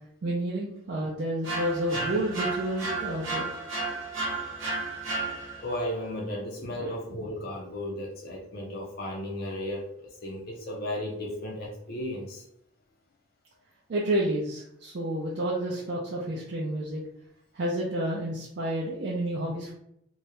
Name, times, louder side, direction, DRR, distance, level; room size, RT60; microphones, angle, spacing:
voice 1, 0.2-3.4 6.8-7.0 13.9-17.0 17.5-19.7, right 1 dB, 55° right, -4 dB, 0.4 m, -30 dB
sound 1, 1.4-5.8, right 3 dB, 75° right, 0.8 m, -33 dB
voice 2, 5.6-12.4, left 1 dB, 50° left, -1 dB, 0.4 m, -35 dB
2.3 x 2.0 x 2.8 m, 0.74 s
head